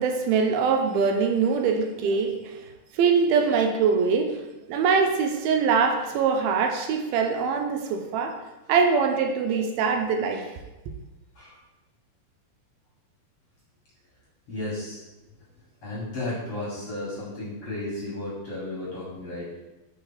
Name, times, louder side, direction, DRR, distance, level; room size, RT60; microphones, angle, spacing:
voice 1, 0.0-2.7 2.9-4.4 4.7-8.4 8.7-10.5, right 5 dB, 85° right, 3 dB, 2.4 m, -23 dB
voice 2, 14.5-15.0 15.8-19.5, left 2 dB, 50° left, -7 dB, 1.9 m, -33 dB
5.3 x 4.8 x 5.5 m, 1.1 s
omnidirectional pair, 4.5 m